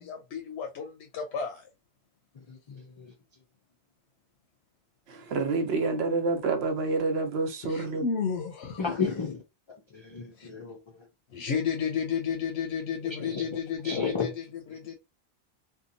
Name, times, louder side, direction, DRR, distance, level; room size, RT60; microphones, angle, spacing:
voice 1, 0.0-1.6 7.6-8.8 10.4-10.5 11.3-14.9, left 6 dB, 85° left, 0.8 m, -32 dB
voice 2, 2.5-3.1 8.8-9.4 9.9-10.8 13.2-13.5 13.8-14.3, left 5 dB, 45° left, 0.3 m, -32 dB
voice 3, 5.1-8.0, right 3 dB, 80° right, 0.9 m, -28 dB
2.8 x 2.2 x 2.5 m
omnidirectional pair, 1.1 m